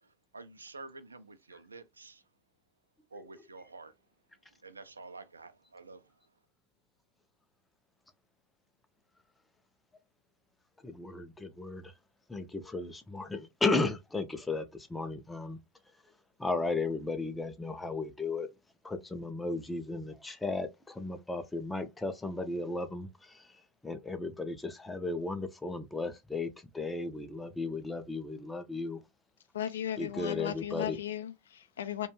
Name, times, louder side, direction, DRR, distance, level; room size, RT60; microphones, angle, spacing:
voice 1, 0.0-2.2 3.1-3.9 4.6-6.1, right 3 dB, 80° right, 0.3 m, -49 dB
voice 2, 10.8-11.9 12.3-15.6 16.4-18.5 18.8-29.0 30.0-31.0, left 3 dB, 10° left, 0.5 m, -35 dB
voice 3, 29.5-32.1, left 11 dB, 65° left, 0.4 m, -36 dB
2.4 x 2.2 x 3.0 m
figure-of-eight pair, 85°, 0 cm